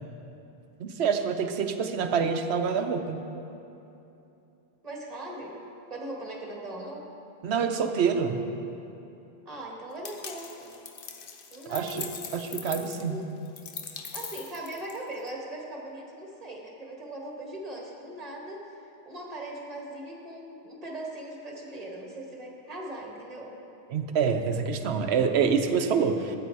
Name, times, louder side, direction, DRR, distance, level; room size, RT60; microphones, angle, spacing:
voice 1, 0.8-3.2 7.4-8.4 11.7-13.2 23.9-26.4, right 6 dB, 90° right, 7 dB, 1.0 m, -26 dB
voice 2, 4.8-5.5 5.9-7.1 9.4-10.7 11.5-12.1 13.0-13.3 14.1-18.6 19.0-23.5, right 1 dB, 40° right, -2 dB, 1.7 m, -39 dB
sound 1, 10.0-15.3, left 6 dB, 60° left, 0.9 m, -41 dB
12.5 x 8.4 x 4.6 m, 2.9 s
omnidirectional pair, 1.1 m